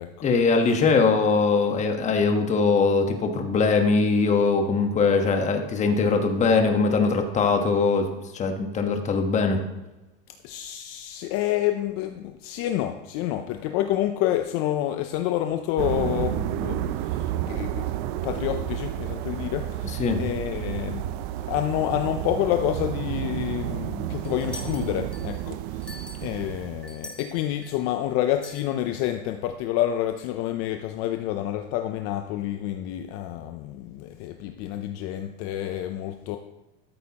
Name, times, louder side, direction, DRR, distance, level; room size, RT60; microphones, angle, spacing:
voice 1, 0.2-9.6 20.0-20.2, left 4 dB, 25° left, 5 dB, 1.2 m, -21 dB
voice 2, 10.4-21.2 21.5-36.4, left 12 dB, 50° left, 7 dB, 0.6 m, -28 dB
sound 1, 15.8-27.2, right 13 dB, 55° right, 0.5 m, -31 dB
sound 2, 24.2-25.4 25.8-27.8 28.4-28.7, left 1 dB, 5° left, 1.4 m, -43 dB
13.0 x 8.0 x 2.9 m, 1.0 s
supercardioid pair, 135°, 29 cm